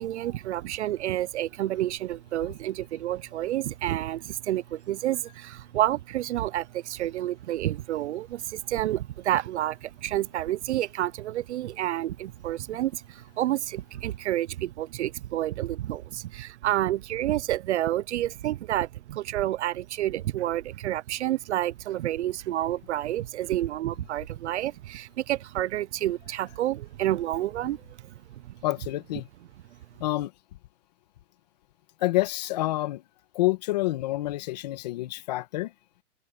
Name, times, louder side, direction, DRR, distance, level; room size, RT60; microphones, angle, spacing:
voice 1, 0.0-27.8, right 13 dB, 70° right, 0.5 m, -29 dB
voice 2, 28.6-29.3 30.0-30.3 32.0-33.0 33.3-35.7, left 17 dB, 35° left, 1.3 m, -28 dB
open air
hypercardioid pair, 175°, 37 cm